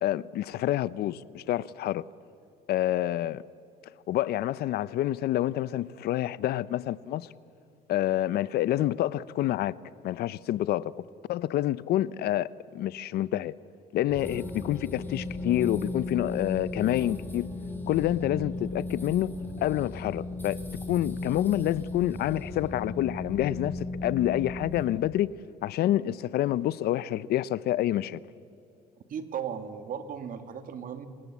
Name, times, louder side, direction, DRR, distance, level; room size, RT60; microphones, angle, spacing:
voice 1, 0.0-2.0 2.7-3.4 4.1-7.3 7.9-9.7 10.0-11.0 11.3-13.5 13.9-17.5 17.9-19.3 19.6-20.6 20.9-25.3 25.6-28.2, left 13 dB, 70° left, 0.7 m, -28 dB
sound 1, 14.1-24.9, left 2 dB, 10° left, 3.5 m, -36 dB
voice 2, 29.1-31.1, right 8 dB, 55° right, 2.1 m, -36 dB
27.5 x 18.0 x 8.4 m
cardioid pair, 110°, 17 cm